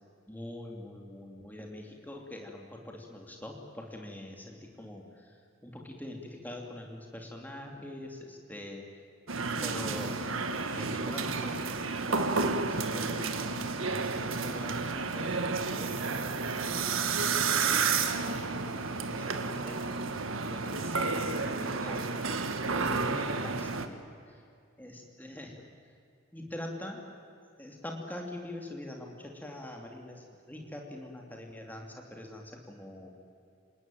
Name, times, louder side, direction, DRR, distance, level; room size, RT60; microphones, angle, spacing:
voice 1, 0.3-8.9 9.6-10.2 10.5-11.6 12.1-13.3 13.8-14.8 15.1-18.7 19.1-20.0 20.4-24.4 24.8-25.7 26.3-27.0 27.6-33.1, left 1 dB, 10° left, 1 dB, 2.9 m, -44 dB
sound 1, 9.3-23.9, right 4 dB, 80° right, 1.6 m, -31 dB
27.5 x 19.0 x 9.3 m, 2.4 s
head